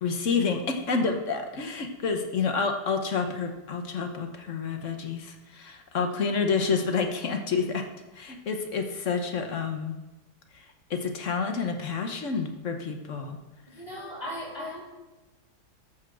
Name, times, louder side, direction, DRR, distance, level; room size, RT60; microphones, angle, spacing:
voice 1, 0.0-7.9 8.1-9.9 10.5-13.4, left 5 dB, 50° left, 5 dB, 1.1 m, -29 dB
voice 2, 13.7-14.8, equal, 20° left, -4 dB, 3.7 m, -37 dB
13.5 x 4.7 x 6.2 m, 1.1 s
omnidirectional pair, 2.0 m